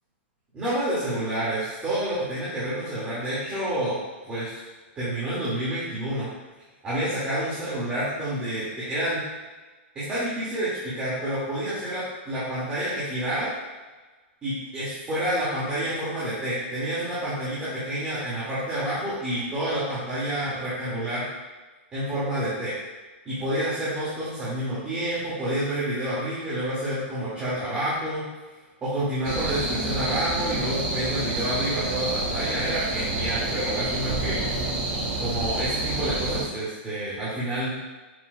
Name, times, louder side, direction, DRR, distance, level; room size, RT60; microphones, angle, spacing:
voice 1, 0.5-4.0 4.2-4.6 5.0-6.3 6.8-9.2 9.9-13.5 14.4-21.2 21.9-22.7 23.2-28.2 28.8-34.4 35.2-37.7, right 1 dB, 15° right, -11 dB, 2.5 m, -28 dB
sound 1, 29.2-36.4, right 2 dB, 40° right, 1.8 m, -28 dB
8.8 x 7.0 x 2.5 m, 1.2 s
supercardioid pair, 160°, 6 cm